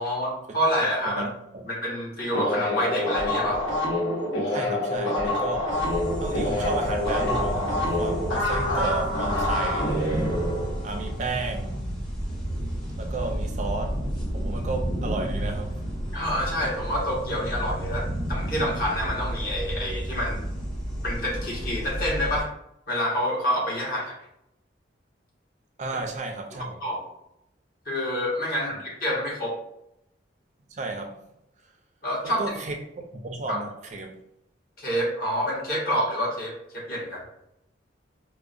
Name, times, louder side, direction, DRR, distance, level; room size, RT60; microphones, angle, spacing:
voice 1, 0.0-1.2 1.7-3.6 16.1-20.4 21.0-22.5 22.9-24.2 26.6-27.0 27.8-29.6 32.0-32.6 33.5-33.6 34.8-37.2, equal, 50° left, 1.1 m, -27 dB
voice 2, 1.0-1.7 4.5-5.8 6.2-10.0 10.8-11.8 13.0-14.0 14.3-15.8 25.8-26.8 30.7-31.2 32.2-32.8 33.1-34.2, right 3 dB, 40° right, 0.3 m, -32 dB
sound 1, 2.3-11.5, left 1 dB, 85° left, 1.2 m, -27 dB
sound 2, 5.7-22.4, equal, 25° left, 1.2 m, -31 dB
4.6 x 2.1 x 2.4 m
head